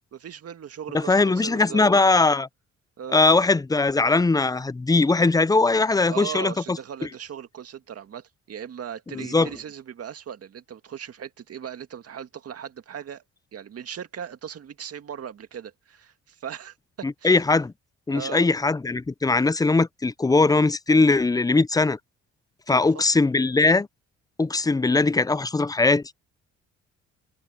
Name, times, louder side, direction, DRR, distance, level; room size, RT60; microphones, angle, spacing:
voice 1, 0.0-2.0 3.0-3.2 6.1-13.2 13.5-17.4 18.1-18.5 22.7-23.0, right 8 dB, 55° right, 2.0 m, -38 dB
voice 2, 0.9-2.5 3.1-6.5 9.1-9.5 17.0-17.7 18.1-22.0 22.7-23.9 24.4-26.0, left 3 dB, 15° left, 0.5 m, -20 dB
cardioid pair, 85°, 29 cm